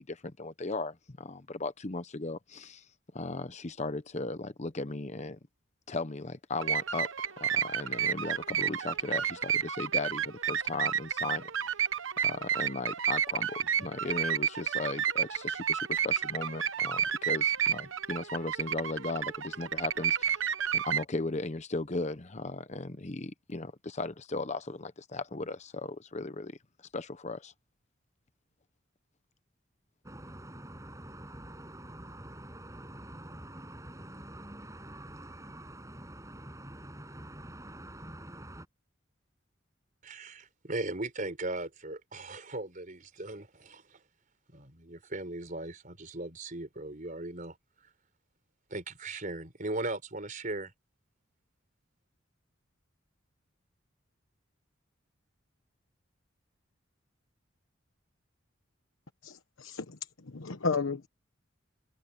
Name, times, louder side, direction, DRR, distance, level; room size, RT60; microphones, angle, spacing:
voice 1, 0.0-2.9 3.1-5.4 5.9-11.5 12.2-20.4 20.7-26.6 26.9-27.5, left 3 dB, 35° left, 0.9 m, -37 dB
sound 1, 6.6-21.0, right 8 dB, 75° right, 1.1 m, -31 dB
sound 2, 30.0-38.7, right 1 dB, 15° right, 7.8 m, -46 dB
voice 2, 40.0-44.0 44.5-47.9 48.7-50.7, right 2 dB, 40° right, 4.6 m, -38 dB
voice 3, 59.2-60.0 60.2-61.1, left 4 dB, 80° left, 1.1 m, -33 dB
head